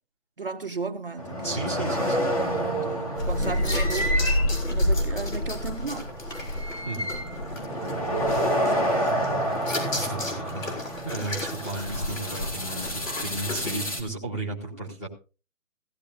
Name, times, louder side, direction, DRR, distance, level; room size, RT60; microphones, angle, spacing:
voice 1, 0.4-4.2 4.7-6.1 8.2-9.1 12.7-13.0, right 4 dB, 40° right, 0.8 m, -36 dB
sound 1, 1.2-14.0, equal, 25° left, 2.1 m, -30 dB
voice 2, 1.4-2.3 6.8-7.1 10.0-15.1, right 2 dB, 10° left, 1.6 m, -34 dB
sound 2, 3.2-13.7, left 1 dB, 70° left, 7.0 m, -30 dB
17.5 x 15.0 x 2.5 m
hypercardioid pair, 180°, 41 cm